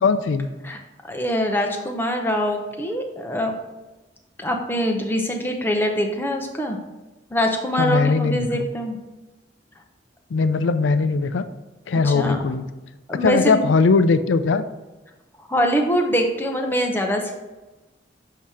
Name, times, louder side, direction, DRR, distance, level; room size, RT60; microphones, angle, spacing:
voice 1, 0.0-0.5 7.8-8.7 10.3-11.4 11.9-12.6 13.2-14.6, left 4 dB, 85° left, 11 dB, 0.4 m, -19 dB
voice 2, 1.1-3.6 4.4-6.8 7.3-9.0 12.0-12.4 13.1-13.6 15.5-17.3, equal, 10° left, 2 dB, 0.7 m, -23 dB
7.4 x 2.8 x 4.7 m, 1.1 s
head